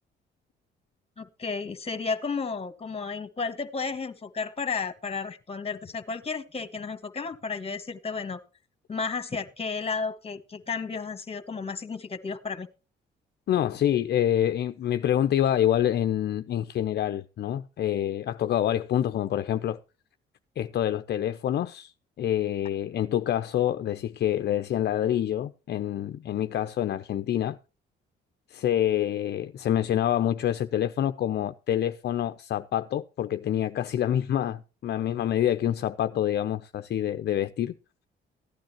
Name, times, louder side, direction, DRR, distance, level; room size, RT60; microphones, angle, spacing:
voice 1, 1.2-8.4 8.9-12.7, left 4 dB, 30° left, 1.5 m, -33 dB
voice 2, 13.5-19.8 20.6-27.6 28.5-37.7, left 11 dB, 55° left, 0.5 m, -27 dB
15.5 x 10.5 x 2.9 m
cardioid pair, 90°, 20 cm